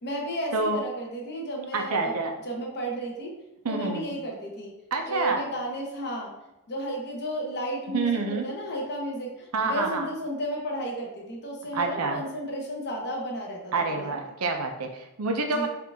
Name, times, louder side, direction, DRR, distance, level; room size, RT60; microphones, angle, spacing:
voice 1, 0.0-2.2 2.4-3.3 3.7-4.7 5.1-6.3 6.7-14.1 15.4-15.7, equal, 50° left, -1 dB, 0.9 m, -33 dB
voice 2, 1.7-2.3 3.6-4.1 4.9-5.4 7.9-8.5 9.5-10.1 11.7-12.2 13.7-15.7, right 3 dB, 75° right, 4 dB, 0.6 m, -27 dB
4.4 x 2.5 x 3.5 m, 0.93 s
head